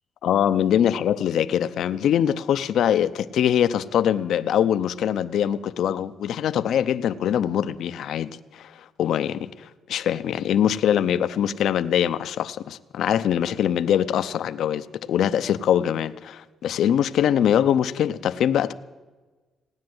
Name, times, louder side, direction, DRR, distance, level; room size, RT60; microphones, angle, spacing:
voice 1, 0.2-9.5 9.9-18.7, left 9 dB, 75° left, 0.6 m, -23 dB
17.5 x 9.7 x 7.8 m
cardioid pair, 90°, 0 cm